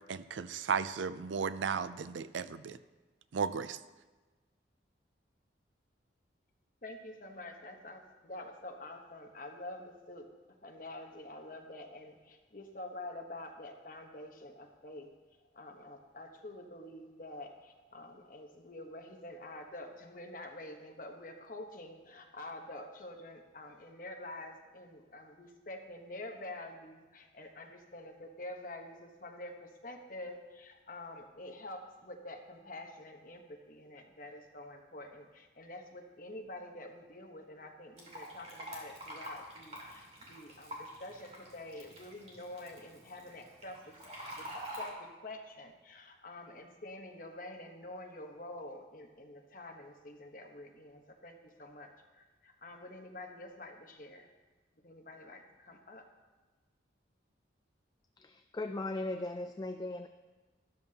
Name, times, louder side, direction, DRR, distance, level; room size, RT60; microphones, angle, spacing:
voice 1, 0.1-2.8 3.3-3.8, right 6 dB, 80° right, 14 dB, 0.4 m, -35 dB
voice 2, 6.8-15.1 15.5-44.0 44.3-44.5 44.8-54.3 54.8-56.1, left 1 dB, 45° left, 3 dB, 1.1 m, -47 dB
Fill (with liquid), 38.0-44.9, equal, 35° right, 2.4 m, -47 dB
voice 3, 58.2-60.1, left 2 dB, 20° left, 7 dB, 0.3 m, -38 dB
12.5 x 12.5 x 2.9 m, 1.2 s
head